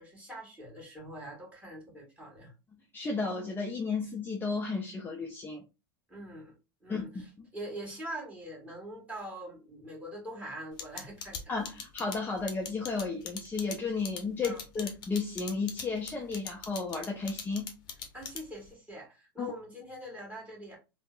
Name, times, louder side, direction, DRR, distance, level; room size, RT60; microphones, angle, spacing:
voice 1, 0.0-2.5 6.1-6.5 6.8-11.4 14.4-14.6 18.1-20.8, equal, 10° right, 1.5 m, -43 dB
voice 2, 2.7-5.6 6.9-7.5 11.5-17.7 19.4-19.5, left 4 dB, 15° left, 0.5 m, -33 dB
sound 1, 10.8-18.7, left 7 dB, 35° left, 0.8 m, -40 dB
3.5 x 2.0 x 2.4 m
hypercardioid pair, 110°, 12 cm